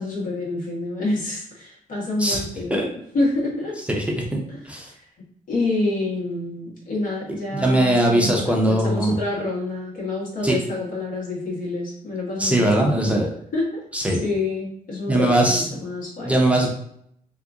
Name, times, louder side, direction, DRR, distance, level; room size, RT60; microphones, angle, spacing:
voice 1, 0.0-2.9 3.1-3.8 4.5-4.6 5.5-13.2 13.5-13.8 14.1-16.3, left 2 dB, 70° left, -4 dB, 1.5 m, -27 dB
voice 2, 7.5-9.1 10.4-10.6 12.4-13.3 13.9-14.2 15.1-15.8 16.2-16.7, right 1 dB, 10° right, -1 dB, 0.6 m, -20 dB
2.8 x 2.5 x 3.6 m, 0.69 s
cardioid pair, 110°, 15 cm